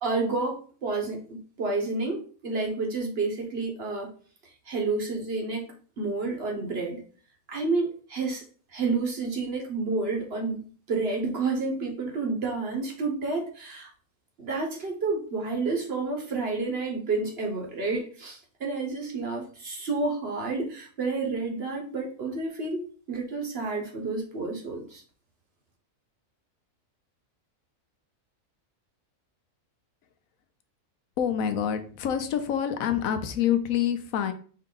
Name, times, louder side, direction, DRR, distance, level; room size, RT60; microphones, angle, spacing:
voice 1, 0.0-4.1 4.7-5.7 6.0-7.0 7.5-8.4 8.7-10.6 10.9-13.9 14.4-22.8 23.1-25.0, right 3 dB, 50° right, 1 dB, 1.1 m, -30 dB
voice 2, 31.2-34.3, left 9 dB, 85° left, 8 dB, 1.1 m, -26 dB
4.4 x 2.7 x 3.8 m, 0.42 s
omnidirectional pair, 1.4 m